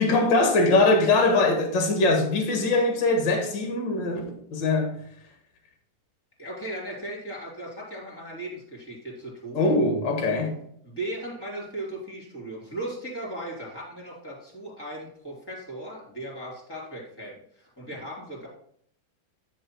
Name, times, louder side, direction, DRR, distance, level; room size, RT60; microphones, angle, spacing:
voice 1, 0.0-5.0 9.5-10.6, left 2 dB, 45° left, 1.5 m, -22 dB
voice 2, 6.4-9.8 10.8-18.5, right 1 dB, 5° left, 3.2 m, -37 dB
11.0 x 4.8 x 4.6 m
omnidirectional pair, 4.2 m